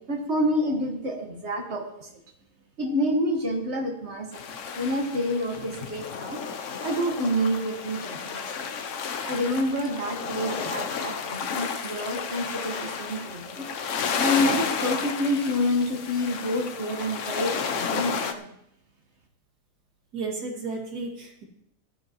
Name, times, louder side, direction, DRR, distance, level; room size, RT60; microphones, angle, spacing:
voice 1, 0.0-2.1 2.8-4.5 4.8-6.4 6.8-8.7 9.2-13.7 14.2-18.5, left 1 dB, 45° right, 3 dB, 1.7 m, -28 dB
sound 1, 4.3-18.3, left 6 dB, 55° left, 1.0 m, -32 dB
voice 2, 10.3-10.7 20.1-21.4, right 3 dB, 75° right, -1 dB, 2.8 m, -34 dB
16.5 x 12.5 x 3.0 m, 0.76 s
omnidirectional pair, 1.7 m